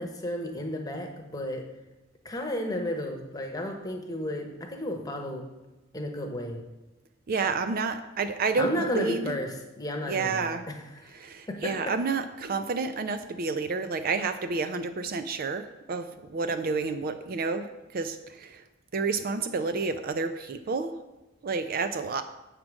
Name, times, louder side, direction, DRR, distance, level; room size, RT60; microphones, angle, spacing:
voice 1, 0.0-1.6 2.2-5.4 5.9-6.6 8.6-10.7 11.5-11.8, left 1 dB, 20° left, 3 dB, 1.0 m, -32 dB
voice 2, 7.3-9.4 10.1-10.7 11.1-18.6 18.9-21.0 21.4-22.2, right 4 dB, 45° right, 10 dB, 0.4 m, -30 dB
7.4 x 4.9 x 6.1 m, 1.1 s
head